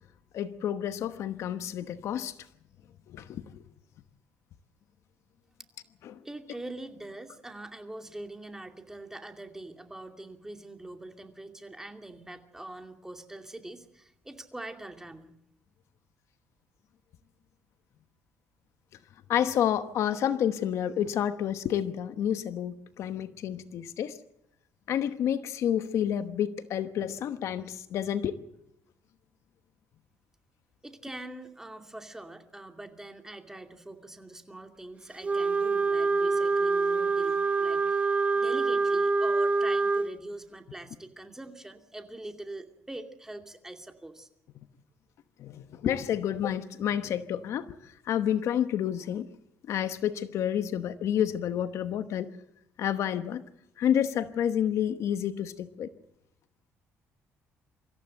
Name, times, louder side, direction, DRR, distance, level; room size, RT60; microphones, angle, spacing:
voice 1, 0.3-2.3 3.1-3.4 6.0-6.2 19.3-24.2 24.9-28.4 45.4-49.3 49.7-52.3 52.8-53.4 53.8-55.9, left 9 dB, 70° left, 11 dB, 1.1 m, -29 dB
voice 2, 6.2-15.3 30.8-44.3, right 1 dB, 10° right, 5 dB, 2.5 m, -43 dB
Wind instrument woodwind instrument, 35.2-40.1, right 4 dB, 25° right, 0.8 m, -25 dB
25.0 x 14.5 x 7.8 m, 0.81 s
cardioid pair, 105°, 5 cm